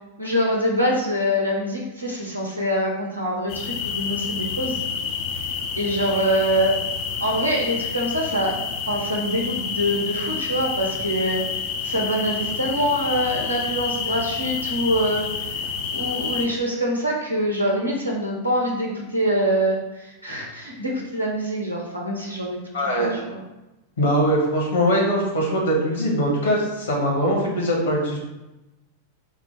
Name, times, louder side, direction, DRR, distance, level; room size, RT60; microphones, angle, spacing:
voice 1, 0.2-4.8 5.8-6.8 7.2-8.6 8.9-11.4 11.8-15.2 15.9-22.6 23.0-23.4, equal, 85° right, -2 dB, 0.8 m, -24 dB
sound 1, 3.5-16.5, left 6 dB, 45° left, 0.4 m, -29 dB
voice 2, 22.7-23.1 24.0-28.2, equal, 65° left, -2 dB, 1.1 m, -21 dB
3.8 x 2.2 x 4.4 m, 1.0 s
figure-of-eight pair, 90°, 0 cm